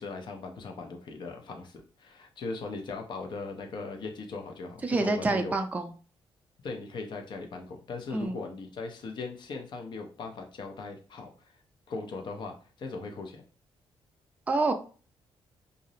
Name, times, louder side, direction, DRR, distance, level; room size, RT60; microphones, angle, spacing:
voice 1, 0.0-5.5 6.6-11.6 11.9-13.4, left 3 dB, 55° left, 4 dB, 0.6 m, -39 dB
voice 2, 4.8-5.9 8.1-8.4 14.5-14.7, right 3 dB, 15° right, 5 dB, 0.4 m, -27 dB
2.5 x 2.0 x 2.7 m, 0.39 s
cardioid pair, 95°, 9 cm